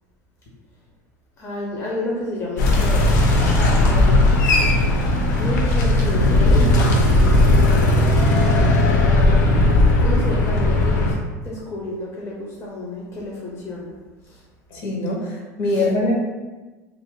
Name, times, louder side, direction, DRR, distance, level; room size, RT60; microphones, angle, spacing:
voice 1, 1.4-3.1 3.6-4.2 4.6-4.7 5.3-8.2 8.5-11.2 11.4-13.9 14.2-14.4 15.7-15.9, left 1 dB, 30° left, -4 dB, 0.7 m, -31 dB
sound 1, 2.6-11.1, left 2 dB, 80° left, 0.6 m, -16 dB
voice 2, 14.7-16.1, left 2 dB, 55° left, -1 dB, 1.0 m, -23 dB
2.5 x 2.5 x 3.6 m, 1.3 s
hypercardioid pair, 85°, 9 cm